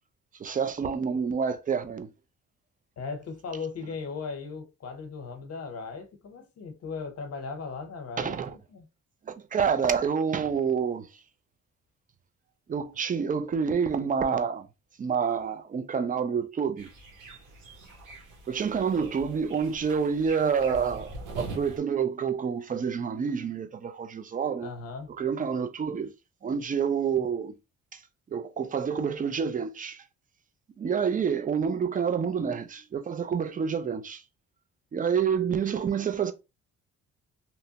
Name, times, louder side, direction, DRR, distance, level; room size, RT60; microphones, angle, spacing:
voice 1, 0.4-2.1 8.2-8.5 9.3-11.1 12.7-14.7 15.0-16.9 18.5-24.7 25.2-26.1 26.4-27.5 27.9-28.0 28.3-30.0 30.8-34.2 34.9-36.3, right 6 dB, 30° right, 0.4 m, -28 dB
voice 2, 3.0-8.9 24.6-25.1 32.3-32.6, left 4 dB, 55° left, 0.8 m, -38 dB
sound 1, 16.8-21.8, right 2 dB, 90° right, 0.9 m, -43 dB
2.8 x 2.1 x 2.8 m
cardioid pair, 90°, 30 cm